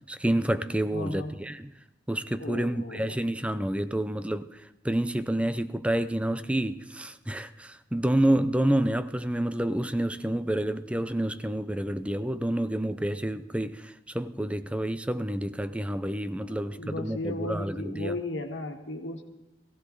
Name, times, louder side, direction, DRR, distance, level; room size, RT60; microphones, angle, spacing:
voice 1, 0.1-1.7 2.1-4.5 4.8-18.1, right 1 dB, 5° right, 0.5 m, -28 dB
voice 2, 0.9-1.3 2.4-3.2 16.5-19.2, left 2 dB, 80° left, 1.7 m, -35 dB
20.5 x 15.5 x 3.9 m
head